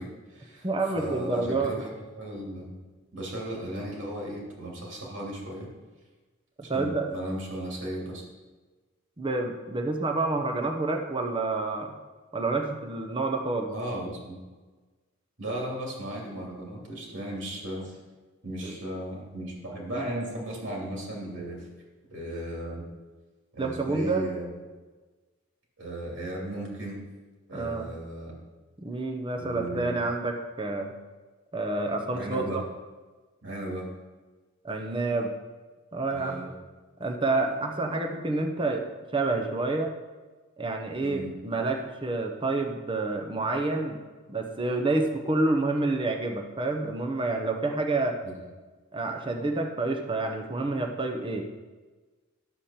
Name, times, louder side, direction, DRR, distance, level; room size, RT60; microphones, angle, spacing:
voice 1, 0.0-0.7 0.9-1.9 2.2-2.7 3.1-5.7 6.6-8.2 13.7-14.4 15.4-18.0 18.4-21.7 22.1-22.8 23.5-24.5 25.8-27.0 27.5-28.3 29.3-30.0 32.1-32.6 33.4-33.9 36.1-36.5 41.0-41.4 48.2-48.3, right 1 dB, 70° right, -3 dB, 2.8 m, -36 dB
voice 2, 0.6-1.7 6.7-7.1 9.2-11.9 12.3-13.7 18.6-18.7 23.6-24.2 27.5-27.9 28.8-30.9 31.5-32.6 34.6-35.3 35.9-36.5 37.0-38.8 39.1-39.9 40.6-44.0 44.3-48.2 48.9-51.5, right 2 dB, 25° right, 4 dB, 0.8 m, -28 dB
11.5 x 7.0 x 4.3 m, 1.3 s
head